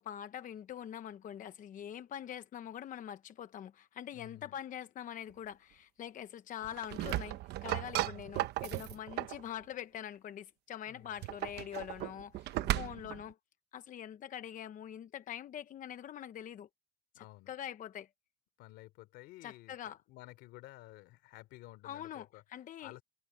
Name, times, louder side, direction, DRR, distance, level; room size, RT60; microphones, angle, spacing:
voice 1, 0.0-13.3 13.7-16.7 17.1-18.1 19.4-20.0 21.8-22.9, left 10 dB, 50° left, 0.9 m, -44 dB
voice 2, 4.1-4.6 10.8-11.2 12.5-13.1 17.1-17.6 18.6-22.4 22.8-23.0, left 17 dB, 90° left, 3.4 m, -53 dB
sound 1, 6.6-9.4 11.1-13.2, right 15 dB, 80° right, 0.9 m, -36 dB
cardioid pair, 110°, 17 cm